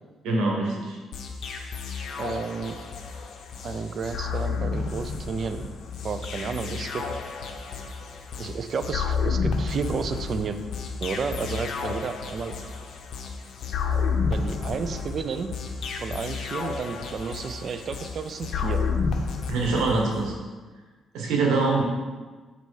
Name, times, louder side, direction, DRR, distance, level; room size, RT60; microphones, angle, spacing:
voice 1, 0.2-1.0 19.5-20.3 21.1-21.8, right 3 dB, 90° right, -1 dB, 1.4 m, -24 dB
sound 1, 1.1-20.3, left 5 dB, 70° left, 0.7 m, -31 dB
voice 2, 2.2-2.7 3.6-5.7 6.0-7.0 8.4-10.6 11.0-12.6 14.3-15.5 16.0-18.8, right 5 dB, 50° right, 9 dB, 0.5 m, -32 dB
5.5 x 4.0 x 4.7 m, 1.3 s
cardioid pair, 90°, 0 cm